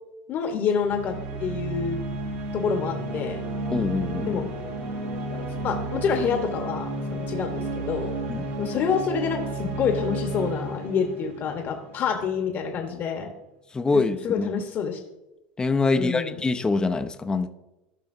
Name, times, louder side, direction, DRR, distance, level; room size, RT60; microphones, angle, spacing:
voice 1, 0.3-2.1 2.5-3.4 4.3-4.5 5.6-8.1 8.6-13.3 13.9-15.0 15.9-16.4, left 6 dB, 45° left, 4 dB, 1.1 m, -27 dB
sound 1, 0.7-12.3, right 2 dB, 75° right, 3.1 m, -32 dB
voice 2, 3.7-4.4 8.3-8.5 13.7-14.6 15.6-17.5, left 3 dB, 15° left, 8 dB, 0.6 m, -25 dB
14.5 x 5.6 x 2.6 m, 0.96 s
hypercardioid pair, 95°, 5 cm